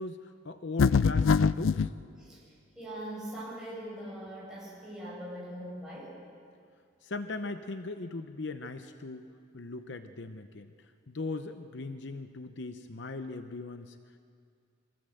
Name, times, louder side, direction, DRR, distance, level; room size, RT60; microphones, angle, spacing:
voice 1, 0.0-1.9 7.0-9.3 9.5-10.7 11.1-14.0, left 3 dB, 60° left, 8 dB, 0.7 m, -39 dB
sound 1, 0.8-1.9, left 5 dB, 80° left, 0.4 m, -23 dB
voice 2, 2.8-6.1, right 1 dB, 5° right, -7 dB, 7.8 m, -41 dB
23.5 x 15.0 x 7.8 m, 2.2 s
head